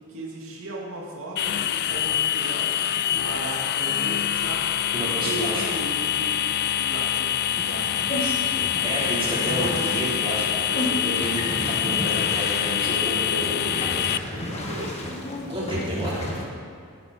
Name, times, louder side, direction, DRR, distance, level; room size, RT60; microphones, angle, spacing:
voice 1, 0.1-4.7 5.2-8.0 13.1-15.1, right 1 dB, 60° right, -4 dB, 2.5 m, -36 dB
sound 1, 1.4-14.2, left 11 dB, 45° left, 0.3 m, -25 dB
voice 2, 4.9-5.6 8.2-8.4 8.8-13.6 15.5-16.3, right 1 dB, 25° right, -8 dB, 3.9 m, -30 dB
sound 2, 7.6-16.4, left 1 dB, 30° left, 1.6 m, -32 dB
17.5 x 9.9 x 4.3 m, 2.2 s
head